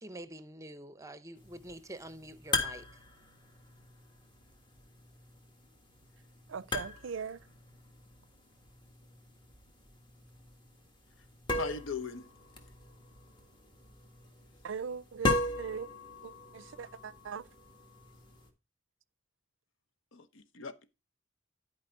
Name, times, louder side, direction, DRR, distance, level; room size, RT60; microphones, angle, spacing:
voice 1, 0.0-3.1, right 1 dB, 15° right, 0.7 m, -46 dB
sound 1, 1.4-18.5, left 2 dB, 25° left, 1.5 m, -39 dB
voice 2, 6.5-7.4 14.6-15.9 16.2-17.5, right 6 dB, 70° right, 0.5 m, -40 dB
voice 3, 11.6-12.3 20.1-20.9, left 5 dB, 75° left, 0.8 m, -39 dB
11.5 x 4.9 x 4.5 m
head